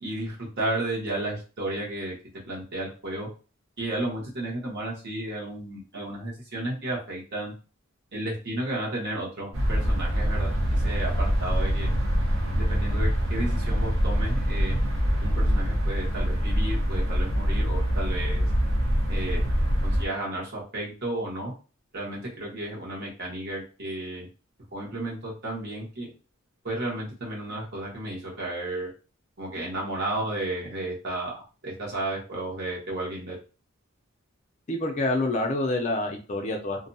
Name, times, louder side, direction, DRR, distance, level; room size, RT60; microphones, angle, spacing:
voice 1, 0.0-2.1 2.5-3.3 3.8-7.5 8.1-11.9 12.5-14.8 15.2-18.4 19.1-19.4 19.8-21.5 21.9-24.3 24.7-26.1 26.6-28.9 29.4-33.4, right 1 dB, 55° right, -4 dB, 1.1 m, -33 dB
sound 1, 9.5-20.1, equal, 70° right, 0.7 m, -24 dB
voice 2, 34.7-36.9, left 2 dB, 35° left, 2 dB, 0.4 m, -27 dB
2.6 x 2.2 x 2.6 m, 0.35 s
head